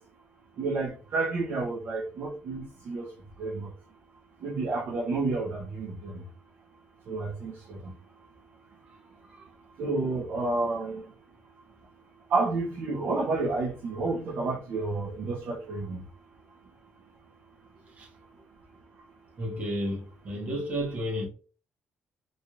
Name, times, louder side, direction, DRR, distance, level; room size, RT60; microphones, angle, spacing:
voice 1, 0.6-3.1 3.4-3.7 4.4-6.2 7.1-7.8 9.8-11.0 12.3-16.0, right 3 dB, 60° right, 0.8 m, -30 dB
voice 2, 8.8-9.5 17.9-18.1 19.4-21.3, equal, 40° right, 1.7 m, -33 dB
3.9 x 3.2 x 2.5 m
cardioid pair, 125°, 4 cm